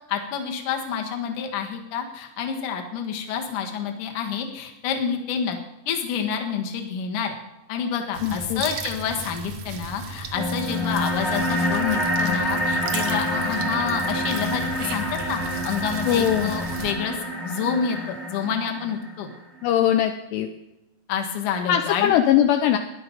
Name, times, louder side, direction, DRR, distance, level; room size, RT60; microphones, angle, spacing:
voice 1, 0.1-5.6 5.9-7.3 7.7-17.2 17.4-19.3 21.1-22.2, left 7 dB, 55° left, 3 dB, 2.5 m, -28 dB
sound 1, 8.1-16.9, right 3 dB, 80° right, 1.4 m, -36 dB
voice 2, 8.2-8.6 16.1-16.5 19.6-20.5 21.7-22.8, left 11 dB, 80° left, 5 dB, 2.7 m, -20 dB
sound 2, 10.3-19.3, equal, ahead, 1.1 m, -27 dB
16.0 x 11.0 x 5.3 m, 0.90 s
omnidirectional pair, 5.2 m